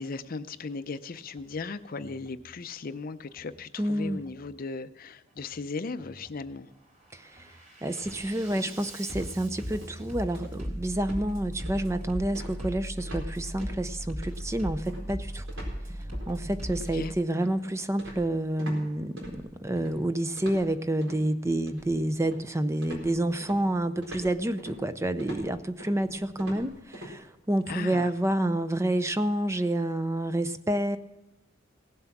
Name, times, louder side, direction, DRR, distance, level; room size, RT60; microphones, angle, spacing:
voice 1, 0.0-6.7 16.9-17.1 27.7-28.1, left 4 dB, 50° left, 13 dB, 0.5 m, -37 dB
Bass drum, 1.3-1.5 2.0-2.5 3.3-3.5 4.0-4.5 5.3-5.5 6.0-6.5 6.9-17.1, equal, 40° right, 3.7 m, -38 dB
voice 2, 3.8-4.2 7.1-7.5 7.8-15.4 16.3-31.0, right 1 dB, 15° right, 11 dB, 0.5 m, -29 dB
sound 1, 8.0-8.8 9.1-9.4 9.7-10.0 10.3-10.7 11.0-11.3 11.7-12.0 12.3-13.3 13.6-13.8 14.2-18.8 19.2-19.9 20.4-21.2 21.7-22.5 22.8-27.1, right 1 dB, 85° right, 4.3 m, -44 dB
17.5 x 7.6 x 5.9 m, 1.0 s
head